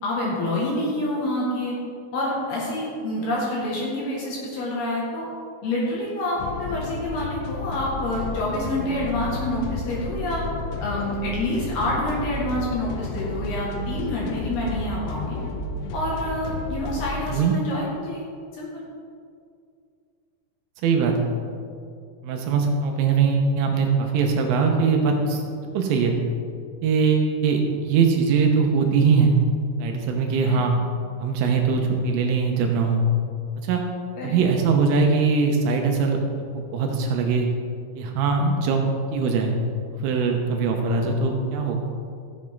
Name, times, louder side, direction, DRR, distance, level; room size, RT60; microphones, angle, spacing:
voice 1, 0.0-1.8 2.1-5.3 5.6-10.4 10.8-15.4 15.9-18.2 18.5-18.7 30.4-30.6 34.2-34.4, left 1 dB, 60° left, -4 dB, 3.0 m, -27 dB
sound 1, 6.4-17.3, left 3 dB, 85° left, 3.5 m, -32 dB
voice 2, 20.8-21.2 22.2-25.4 25.7-26.1 26.8-29.4 29.8-30.7 31.2-33.0 33.6-33.8 34.2-36.2 36.5-37.5 38.0-38.8 39.1-39.5 39.9-41.8, right 5 dB, 80° right, 2 dB, 3.3 m, -21 dB
15.5 x 7.5 x 3.6 m, 2.3 s
omnidirectional pair, 6.0 m